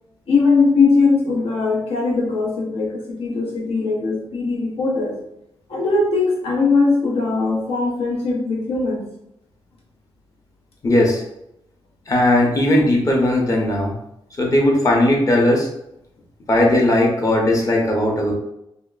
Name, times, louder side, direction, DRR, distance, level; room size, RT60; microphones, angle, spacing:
voice 1, 0.3-5.2 5.7-9.1, left 4 dB, 85° left, -2 dB, 0.7 m, -20 dB
voice 2, 10.8-11.2 12.1-13.9 14.4-15.7 16.5-18.3, left 1 dB, 35° left, -1 dB, 0.7 m, -17 dB
2.8 x 2.1 x 2.3 m, 0.80 s
cardioid pair, 90°, 10 cm